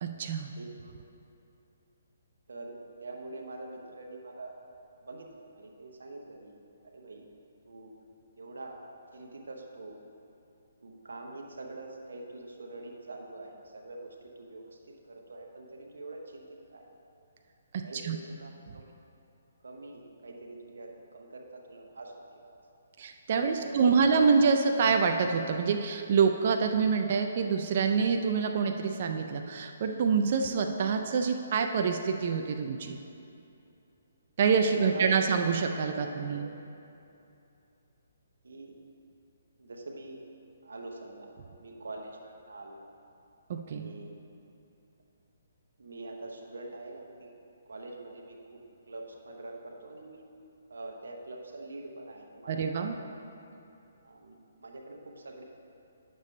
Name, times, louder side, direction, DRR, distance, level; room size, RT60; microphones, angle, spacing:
voice 1, 0.0-0.5 17.7-18.2 23.0-33.0 34.4-36.5 43.5-43.9 52.5-53.0, right 5 dB, 50° right, 5 dB, 0.4 m, -26 dB
voice 2, 0.6-0.9 2.5-4.5 5.0-6.6 6.8-7.2 7.6-7.9 8.4-8.8 9.1-10.0 10.8-16.9 17.8-18.9 19.6-22.6 23.4-24.1 34.8-35.5 36.0-36.4 38.4-38.8 39.6-40.2 40.6-41.3 41.6-42.8 43.6-44.1 45.8-47.3 47.7-50.3 50.7-53.1 54.0-55.4, right 2 dB, 85° right, 1 dB, 1.0 m, -45 dB
9.4 x 6.7 x 3.2 m, 2.8 s
hypercardioid pair, 150°, 0 cm